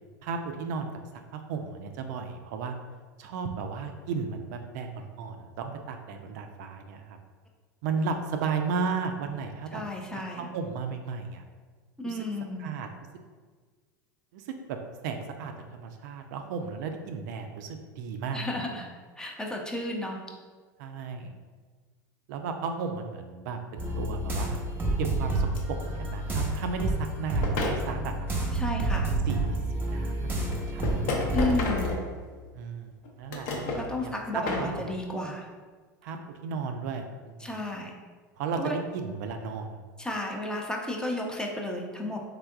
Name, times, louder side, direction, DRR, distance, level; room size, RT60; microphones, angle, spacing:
voice 1, 0.2-0.9 1.3-2.7 3.2-7.2 7.8-9.8 10.1-11.4 12.0-12.2 12.6-12.9 14.3-14.8 15.0-18.7 20.8-21.3 22.3-24.6 25.0-25.5 25.8-28.3 29.3-31.4 32.5-32.9 33.2-33.7 34.0-35.0 36.0-37.6 38.4-39.8, right 5 dB, 65° right, 5 dB, 0.4 m, -34 dB
voice 2, 9.7-10.5 12.0-12.7 18.3-18.9 19.2-20.2 28.5-29.1 31.3-31.9 33.7-35.5 37.4-37.9 38.6-38.8 40.0-42.2, left 1 dB, 5° left, 0 dB, 0.6 m, -32 dB
sound 1, 23.8-31.9, right 2 dB, 20° right, 0.9 m, -29 dB
sound 2, 25.6-25.7 27.3-27.8 29.5-29.6 30.5-32.5 33.0-33.9 34.3-34.7, left 2 dB, 55° left, 0.7 m, -31 dB
3.6 x 3.4 x 2.3 m, 1.5 s
hypercardioid pair, 90°, 11 cm